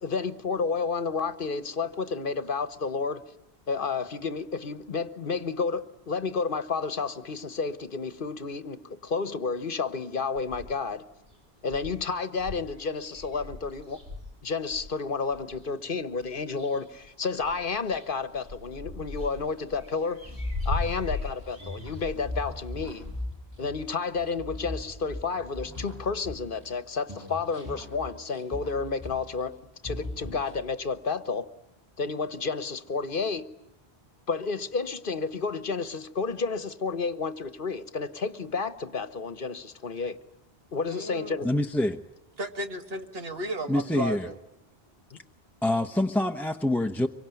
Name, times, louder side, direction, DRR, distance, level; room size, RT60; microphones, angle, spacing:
voice 1, 0.0-3.2 3.7-11.0 11.6-14.0 14.4-20.2 20.6-23.0 23.6-29.5 29.8-31.5 32.0-33.5 34.3-40.2 40.7-41.5 45.1-45.2, left 4 dB, 55° left, 1.3 m, -31 dB
sound 1, 10.4-11.0 11.3-11.4 11.6-15.7 16.2-17.1 17.3-23.2, left 2 dB, 50° right, 4.4 m, -38 dB
sound 2, 20.2-26.8 27.1-29.6 29.8-30.9, left 1 dB, 15° right, 6.9 m, -39 dB
voice 2, 40.9-41.5 42.4-44.3, right 1 dB, 65° right, 2.1 m, -34 dB
voice 3, 41.4-42.0 43.7-44.3 45.6-47.1, left 1 dB, ahead, 0.9 m, -26 dB
25.5 x 23.5 x 9.1 m
omnidirectional pair, 1.1 m